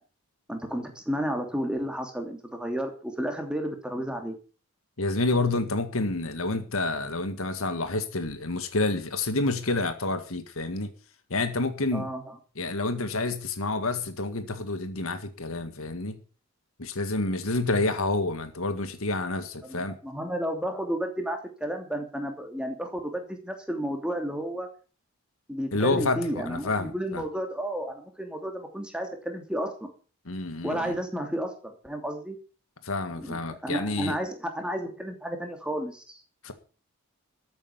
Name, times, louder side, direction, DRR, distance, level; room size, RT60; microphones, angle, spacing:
voice 1, 0.5-4.3 11.9-12.4 19.6-24.7 25.5-29.9 30.6-32.4 33.1-36.2, equal, 5° right, 4 dB, 2.8 m, -32 dB
voice 2, 5.0-10.9 11.3-12.1 12.6-16.2 16.8-20.0 25.7-27.2 30.3-30.9 32.8-34.2 36.4-36.5, left 2 dB, 70° left, 9 dB, 1.8 m, -28 dB
14.0 x 8.7 x 7.1 m, 0.37 s
head